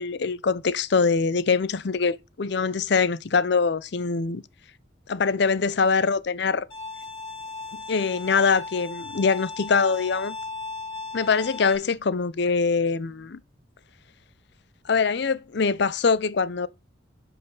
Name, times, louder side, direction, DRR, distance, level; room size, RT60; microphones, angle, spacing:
voice 1, 0.0-4.4 5.1-6.7 7.9-10.4 11.1-13.4 14.9-16.7, left 5 dB, 60° left, 0.5 m, -23 dB
Bowed string instrument, 6.7-11.8, left 3 dB, 30° left, 4.0 m, -37 dB
9.3 x 5.6 x 3.8 m
head